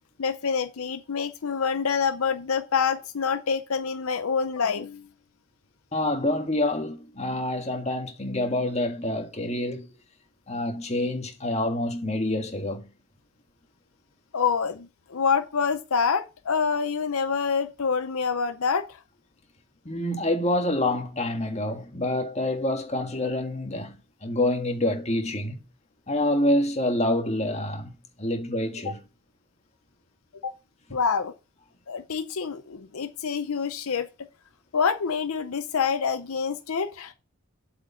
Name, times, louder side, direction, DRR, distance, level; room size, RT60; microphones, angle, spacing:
voice 1, 0.2-5.0 14.3-19.0 28.9-29.0 30.4-30.5 30.9-31.3 31.9-34.1 34.7-37.1, left 6 dB, 75° left, 0.6 m, -26 dB
voice 2, 5.9-9.9 10.5-12.8 19.8-23.9 24.2-25.6 26.1-29.0, left 1 dB, 30° left, 1.6 m, -27 dB
7.9 x 5.0 x 7.0 m
head